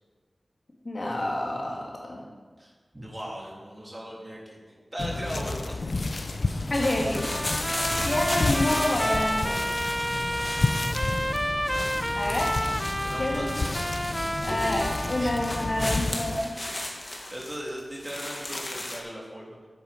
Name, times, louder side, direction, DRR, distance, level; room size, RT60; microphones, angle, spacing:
voice 1, 0.8-2.2 6.7-7.3 8.0-9.6 12.2-12.5 13.2-13.5 14.4-16.5, left 1 dB, 50° left, -2 dB, 2.5 m, -28 dB
voice 2, 2.6-4.6 4.9-6.0 13.0-14.2 14.6-14.7 15.1-16.0 16.8-19.7, equal, 25° right, -3 dB, 3.0 m, -39 dB
sound 1, 5.0-16.4, left 3 dB, 65° left, 0.6 m, -31 dB
sound 2, 6.1-19.0, left 1 dB, 30° left, 1.7 m, -36 dB
Trumpet, 7.1-16.0, equal, 5° right, 0.3 m, -31 dB
11.5 x 8.3 x 5.2 m, 1.5 s
wide cardioid pair, 60°, 0 cm